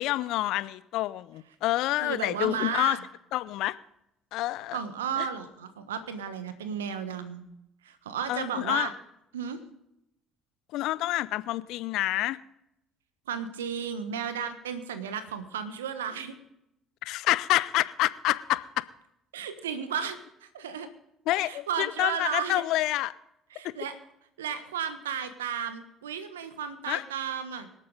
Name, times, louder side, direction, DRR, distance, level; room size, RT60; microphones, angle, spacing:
voice 1, 0.0-3.0 3.3-3.8 4.3-4.8 5.2-5.3 8.3-8.9 10.7-12.4 17.1-18.7 21.3-23.1 23.6-23.7 26.9-27.0, left 16 dB, 65° left, 17 dB, 0.5 m, -28 dB
voice 2, 2.0-3.0 4.7-7.4 7.8-8.9 9.3-9.6 13.3-16.3 19.3-20.9 21.4-22.6 23.5-23.9 24.4-27.7, right 7 dB, 80° right, 11 dB, 1.2 m, -34 dB
25.5 x 8.5 x 3.9 m, 0.82 s
figure-of-eight pair, 55°, 0 cm